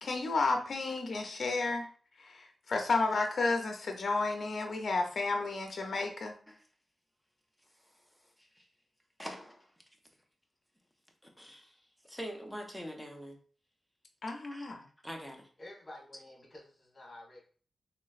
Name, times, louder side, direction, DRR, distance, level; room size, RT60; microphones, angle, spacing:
voice 1, 0.0-1.9 2.2-6.4 14.2-14.8, left 3 dB, 55° left, 3 dB, 0.5 m, -32 dB
voice 2, 9.2-9.7 11.2-11.7 12.0-13.4 14.5-14.8 15.0-15.5, equal, ahead, 2 dB, 0.6 m, -44 dB
voice 3, 15.6-17.5, left 1 dB, 35° left, -2 dB, 1.4 m, -50 dB
3.1 x 3.0 x 2.4 m, 0.41 s
wide cardioid pair, 125°, 0 cm